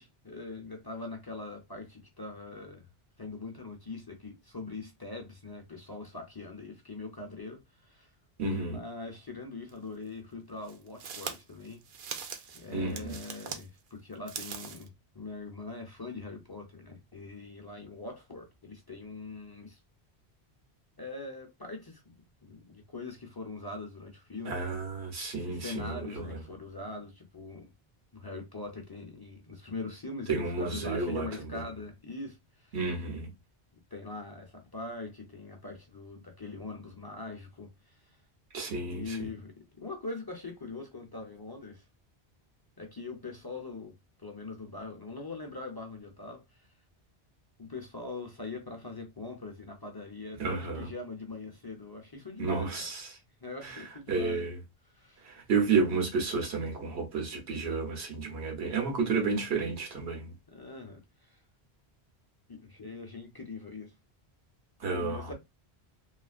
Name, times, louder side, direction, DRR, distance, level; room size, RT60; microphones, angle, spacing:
voice 1, 0.0-2.9 3.2-8.1 8.6-11.8 12.5-19.8 21.0-22.1 22.4-24.8 25.4-27.7 28.1-32.7 33.9-38.2 38.8-41.9 42.8-43.9 44.2-46.7 47.6-52.9 53.4-54.4 54.9-55.2 60.5-61.4 62.5-63.9 64.9-65.3, left 3 dB, 30° left, 0.4 m, -42 dB
voice 2, 8.4-8.8 12.7-13.2 24.4-26.4 30.3-31.6 32.7-33.3 38.5-39.3 50.4-50.9 52.4-53.2 53.6-54.6 55.2-60.3 64.8-65.3, right 4 dB, 90° right, 1.3 m, -31 dB
sound 1, 9.7-9.8 10.6-13.7 14.1-14.9, right 7 dB, 70° right, 0.8 m, -41 dB
3.0 x 2.4 x 2.4 m
omnidirectional pair, 1.1 m